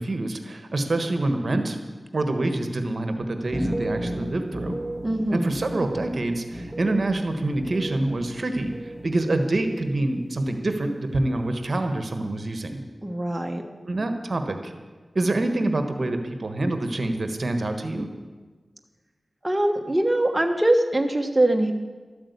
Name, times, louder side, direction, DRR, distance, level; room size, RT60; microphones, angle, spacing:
voice 1, 0.0-1.8 2.1-4.8 5.3-12.8 13.8-14.7 15.1-18.1, right 2 dB, 55° right, 6 dB, 1.4 m, -26 dB
sound 1, 3.4-9.2 9.5-10.2 10.5-11.0, right 1 dB, 5° left, 2.5 m, -35 dB
voice 2, 5.0-5.5 13.0-13.6 19.4-21.7, right 1 dB, 20° right, 4 dB, 1.2 m, -22 dB
13.0 x 8.8 x 8.3 m, 1.4 s
cardioid pair, 55°, 0 cm